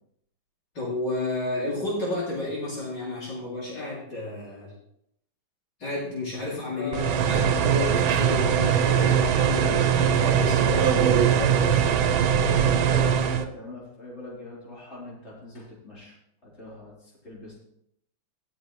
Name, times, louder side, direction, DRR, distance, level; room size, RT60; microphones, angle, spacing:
voice 1, 0.7-4.7 5.8-11.9, left 2 dB, 60° left, -7 dB, 3.3 m, -31 dB
voice 2, 6.7-7.3 7.8-8.0 12.4-16.2 16.4-17.5, left 2 dB, 30° left, -5 dB, 3.8 m, -39 dB
sound 1, 6.9-13.4, right 8 dB, 90° right, 1.6 m, -21 dB
17.0 x 6.8 x 3.1 m, 0.75 s
omnidirectional pair, 2.1 m